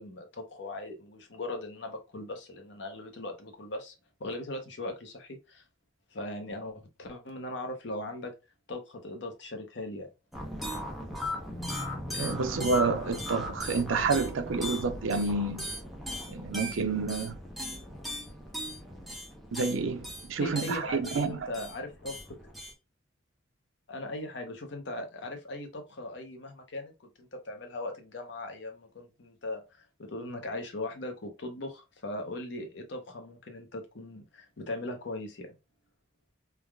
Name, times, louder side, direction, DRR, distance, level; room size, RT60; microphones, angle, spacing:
voice 1, 0.0-3.9 4.2-5.6 6.1-8.3 8.7-10.1 20.4-22.4 23.9-35.5, left 2 dB, 60° left, 0.7 m, -39 dB
sound 1, 10.3-22.7, left 1 dB, ahead, 0.6 m, -38 dB
voice 2, 12.1-15.7 16.3-17.4 19.5-21.5, right 4 dB, 80° right, 0.5 m, -29 dB
3.3 x 2.3 x 2.2 m
head